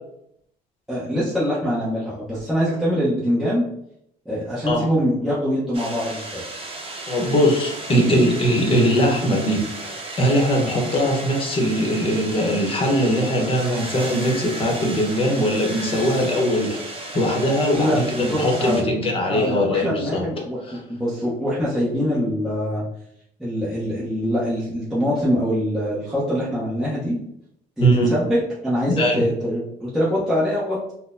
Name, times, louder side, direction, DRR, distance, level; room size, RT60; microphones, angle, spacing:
voice 1, 0.9-3.7 4.2-6.4 7.9-8.3 17.7-18.9 19.2-20.6 20.9-22.8 23.4-27.2 27.8-30.9, equal, 5° right, -10 dB, 0.9 m, -24 dB
sound 1, 5.7-18.8, right 2 dB, 35° right, 0.8 m, -34 dB
voice 2, 7.1-20.2 20.7-20.8 27.8-28.1 28.9-29.2, equal, 35° left, 0 dB, 1.0 m, -21 dB
3.8 x 2.2 x 2.6 m, 0.75 s
cardioid pair, 110°, 17 cm